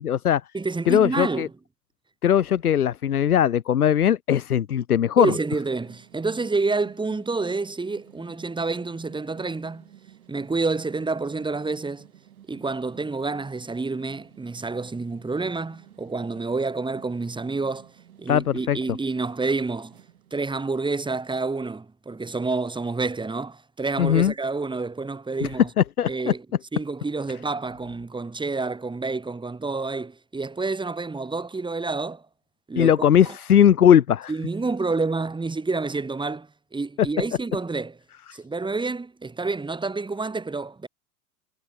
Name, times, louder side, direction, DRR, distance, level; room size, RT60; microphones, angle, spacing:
voice 1, 0.0-0.4 0.9-1.5 2.2-5.3 18.3-18.8 24.0-24.3 25.8-26.3 32.8-34.3 38.3-38.4, left 9 dB, 75° left, 1.1 m, -19 dB
voice 2, 0.5-1.5 5.2-9.9 10.3-12.1 12.5-17.9 18.2-20.0 20.3-25.7 26.1-26.5 26.7-32.2 32.7-32.9 33.3-33.4 34.3-38.0 38.3-40.9, right 3 dB, 10° right, 3.8 m, -28 dB
sound 1, 5.6-21.0, right 11 dB, 70° right, 5.2 m, -52 dB
figure-of-eight pair, 85°, 45 cm